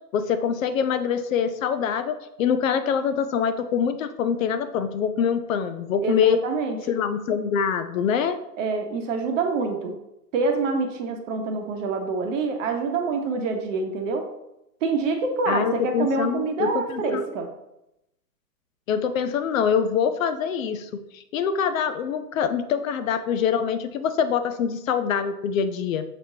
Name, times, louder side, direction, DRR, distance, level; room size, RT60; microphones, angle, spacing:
voice 1, 0.1-6.4 6.9-8.4 15.5-17.2 18.9-26.0, left 7 dB, 55° left, 10 dB, 0.5 m, -24 dB
voice 2, 6.0-6.8 8.6-10.0 10.3-14.3 14.8-17.5, right 4 dB, 50° right, 4 dB, 0.9 m, -26 dB
5.9 x 3.0 x 2.7 m, 0.86 s
hypercardioid pair, 115°, 48 cm